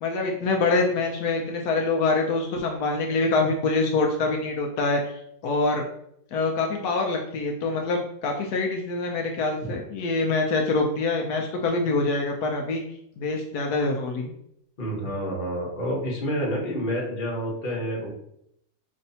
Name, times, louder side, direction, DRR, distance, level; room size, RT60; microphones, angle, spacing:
voice 1, 0.0-5.8 6.3-12.8 13.2-14.3, left 3 dB, 80° left, 1 dB, 1.1 m, -25 dB
voice 2, 14.8-18.1, equal, 35° left, -3 dB, 1.3 m, -28 dB
5.3 x 3.2 x 2.7 m, 0.74 s
omnidirectional pair, 1.7 m